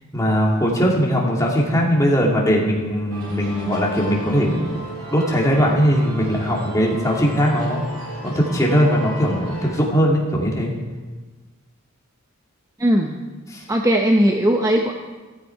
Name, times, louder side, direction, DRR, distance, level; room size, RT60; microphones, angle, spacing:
voice 1, 0.1-7.8 8.2-10.7 13.5-13.6, equal, 15° left, -2 dB, 2.5 m, -20 dB
sound 1, 3.1-9.8, right 1 dB, 80° right, 3.5 m, -34 dB
voice 2, 12.8-13.2 13.7-14.9, equal, 15° right, 3 dB, 0.7 m, -18 dB
14.5 x 13.5 x 4.7 m, 1.3 s
head